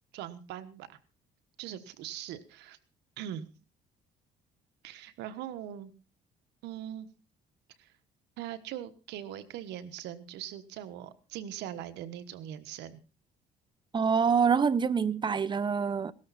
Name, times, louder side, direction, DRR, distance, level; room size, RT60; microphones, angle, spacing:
voice 1, 0.1-1.0 1.6-2.8 3.2-3.5 4.8-5.9 6.6-7.1 7.8-7.9 8.4-13.0, right 11 dB, 85° right, 1.3 m, -41 dB
voice 2, 13.9-16.1, right 6 dB, 25° right, 0.8 m, -26 dB
18.0 x 13.0 x 4.2 m
cardioid pair, 110°, 17 cm